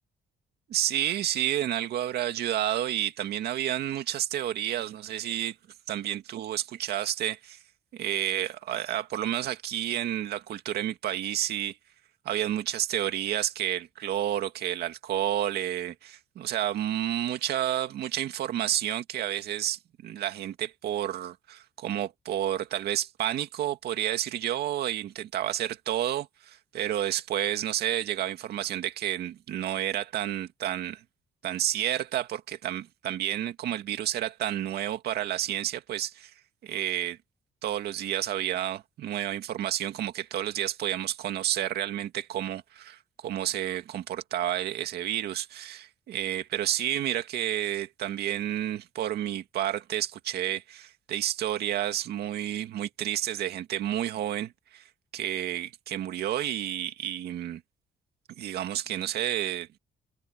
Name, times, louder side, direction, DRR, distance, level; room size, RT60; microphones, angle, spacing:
voice 1, 0.7-5.6 5.9-7.6 7.9-11.8 12.2-31.0 31.4-36.3 36.6-37.2 37.6-54.8 55.1-57.6 58.4-59.7, right 12 dB, 80° right, 2.2 m, -30 dB
cardioid pair, 130°, 16 cm